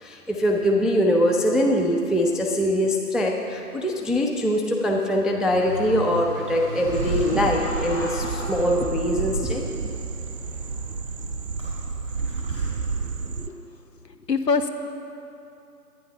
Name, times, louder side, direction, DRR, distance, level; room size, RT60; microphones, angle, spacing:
voice 1, 0.0-9.6, equal, ahead, 0 dB, 0.5 m, -23 dB
Car, 5.3-13.5, equal, 15° left, 1.4 m, -39 dB
sound 1, 6.9-9.4, left 1 dB, 50° left, 1.0 m, -40 dB
sound 2, 6.9-13.5, right 4 dB, 65° right, 0.6 m, -30 dB
voice 2, 14.3-14.7, left 4 dB, 90° left, 8 dB, 1.1 m, -24 dB
11.0 x 9.7 x 5.5 m, 2.8 s
figure-of-eight pair, 170°, 48 cm